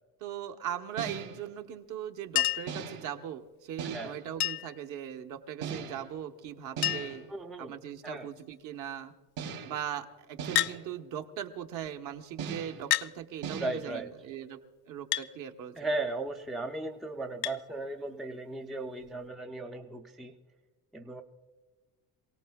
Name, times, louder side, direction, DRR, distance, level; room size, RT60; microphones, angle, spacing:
voice 1, 0.2-7.3 7.6-9.1 9.6-15.8, right 9 dB, 55° right, 6 dB, 1.1 m, -39 dB
sound 1, 1.0-1.5 2.7-3.2 3.8-4.3 5.6-6.2 6.8-7.3 9.4-9.9 10.4-10.9 12.4-12.9 13.4-13.8, right 6 dB, 80° right, 3.5 m, -39 dB
Chink clink, 2.4-2.8 4.4-4.8 6.2-6.3 6.5-6.6 6.8-7.3 8.0-8.4 10.5-10.8 11.9-12.0 12.9-13.1 15.1-15.3 17.4-17.6 19.0-19.1, left 16 dB, 85° left, 0.5 m, -29 dB
voice 2, 7.3-7.7 8.0-8.3 13.6-14.1 15.8-20.3 20.9-21.2, right 2 dB, ahead, 4 dB, 0.3 m, -36 dB
27.5 x 17.5 x 2.3 m, 1.3 s
cardioid pair, 165°, 37 cm